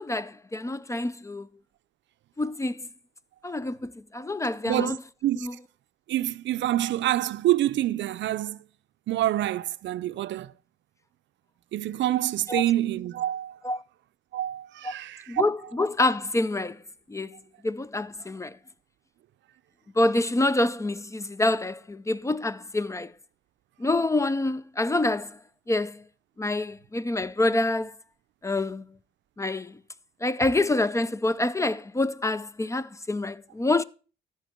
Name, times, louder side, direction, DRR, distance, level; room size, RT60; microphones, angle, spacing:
voice 1, 0.0-1.5 2.4-2.9 3.4-5.0 5.3-5.6 12.5-12.6 13.6-13.8 14.8-14.9 15.3-16.8 17.1-17.4 17.6-18.6 20.0-23.1 23.8-25.4 25.7-26.0 26.4-27.9 28.4-28.9 29.4-29.8 30.2-33.8, left 2 dB, 15° left, 0.4 m, -27 dB
voice 2, 4.7-5.0 5.2-5.5 6.1-8.6 9.1-10.5 11.7-13.6 14.3-15.4, right 13 dB, 70° right, 0.5 m, -26 dB
14.0 x 6.1 x 4.4 m
cardioid pair, 90°, 20 cm